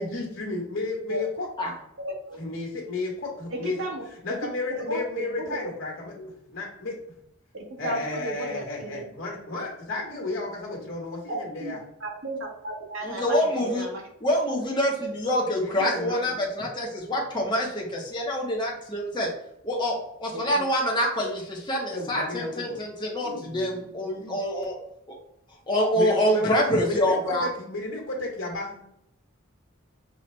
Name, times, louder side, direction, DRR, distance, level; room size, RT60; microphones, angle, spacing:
voice 1, 0.0-1.5 2.3-3.8 4.2-6.1 6.5-7.0 7.8-11.8 15.6-16.2 21.9-22.8 23.2-24.4 25.9-28.8, left 2 dB, 60° left, 0 dB, 1.5 m, -33 dB
voice 2, 2.0-2.4 3.5-4.0 4.8-5.6 6.2-6.3 7.5-9.0 11.3-11.7 12.0-14.0 20.3-20.7, right 1 dB, 65° right, 0 dB, 1.3 m, -34 dB
voice 3, 13.0-13.9 14.2-19.3 19.6-24.8 25.1-25.2 25.7-27.5, equal, 20° left, -2 dB, 0.9 m, -26 dB
5.8 x 2.4 x 3.1 m, 0.78 s
head